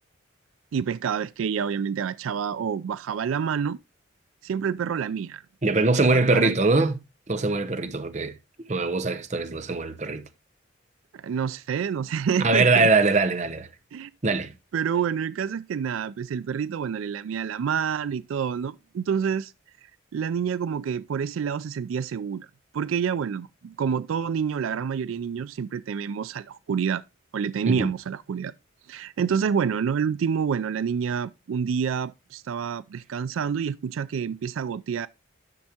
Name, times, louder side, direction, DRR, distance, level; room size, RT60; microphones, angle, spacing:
voice 1, 0.7-3.8 4.4-5.4 6.1-6.5 11.1-12.9 13.9-14.1 14.7-19.5 20.1-22.5 22.7-27.0 27.3-28.5 28.9-35.1, right 7 dB, 90° right, 0.3 m, -28 dB
voice 2, 5.6-6.9 7.3-8.3 8.7-10.2 12.4-13.7 14.2-14.5 27.7-27.9, right 3 dB, 35° right, 0.7 m, -22 dB
10.5 x 6.3 x 2.8 m
head